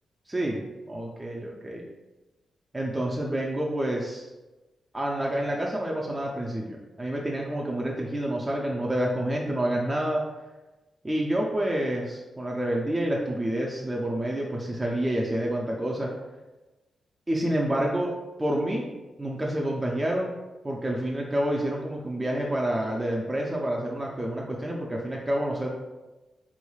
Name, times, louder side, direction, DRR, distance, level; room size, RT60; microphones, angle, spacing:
voice 1, 0.3-0.6 0.9-1.8 2.7-4.3 4.9-10.2 11.0-16.1 17.3-18.1 18.4-18.9 19.2-20.3 20.6-25.7, right 1 dB, 15° right, -3 dB, 0.3 m, -28 dB
3.4 x 3.1 x 2.3 m, 1.1 s
wide cardioid pair, 125°, 0 cm